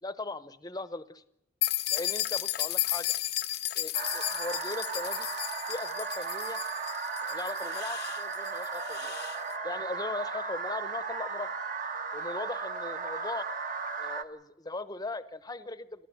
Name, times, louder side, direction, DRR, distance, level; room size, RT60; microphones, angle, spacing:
voice 1, 0.0-1.2 1.9-3.1 3.7-5.3 5.7-6.6 7.2-9.2 9.6-11.5 12.1-13.5 14.0-16.1, left 2 dB, 20° left, 14 dB, 0.8 m, -38 dB
sound 1, 1.6-9.4, left 14 dB, 55° left, 0.7 m, -33 dB
sound 2, 3.9-14.2, right 5 dB, 45° right, 1.2 m, -36 dB
29.0 x 13.5 x 7.9 m, 0.83 s
head